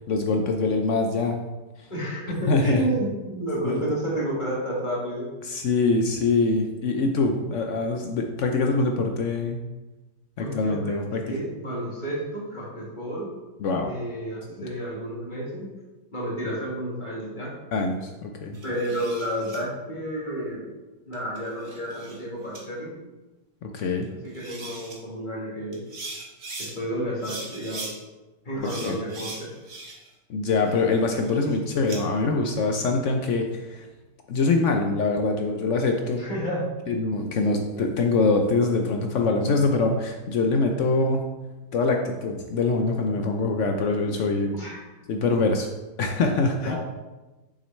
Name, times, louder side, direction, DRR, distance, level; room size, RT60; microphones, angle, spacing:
voice 1, 0.1-1.4 2.5-2.9 3.6-3.8 5.4-9.6 10.4-11.2 13.6-13.9 16.5-16.6 17.7-18.6 23.6-24.1 28.8-29.0 30.3-33.9 34.3-36.2 36.9-41.2 41.7-44.5 45.1-45.7 46.0-46.8, left 3 dB, 70° left, 3 dB, 0.7 m, -24 dB
voice 2, 1.9-5.3 10.4-11.0 11.3-13.3 13.8-15.7 16.1-17.5 18.6-20.7 21.1-22.9 24.2-25.8 26.6-27.9 28.4-29.5 36.1-36.7 44.5-44.8 46.3-46.8, right 1 dB, 30° left, -5 dB, 1.6 m, -31 dB
sound 1, 18.5-19.6 21.1-22.2 22.5-22.6 24.0-24.1 24.3-25.0 25.7-26.7 27.2-27.9 28.6-30.1 30.5-32.0, right 3 dB, 45° right, 1.5 m, -40 dB
6.4 x 6.1 x 3.2 m, 1.1 s
omnidirectional pair, 1.8 m